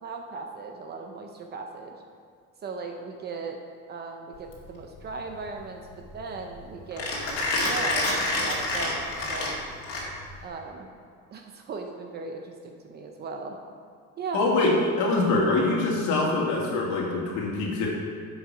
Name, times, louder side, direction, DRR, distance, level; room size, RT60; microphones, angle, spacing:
voice 1, 0.0-2.0 2.6-3.6 3.9-7.1 7.4-9.6 10.4-10.9 11.3-13.6 14.2-14.4, right 4 dB, 30° right, 3 dB, 0.7 m, -37 dB
Mechanisms, 4.4-10.5, left 2 dB, 45° left, 2.3 m, -29 dB
voice 2, 14.3-14.7 15.0-17.9, left 3 dB, 60° left, -2 dB, 2.5 m, -24 dB
11.0 x 7.4 x 4.9 m, 2.2 s
cardioid pair, 175°, 33 cm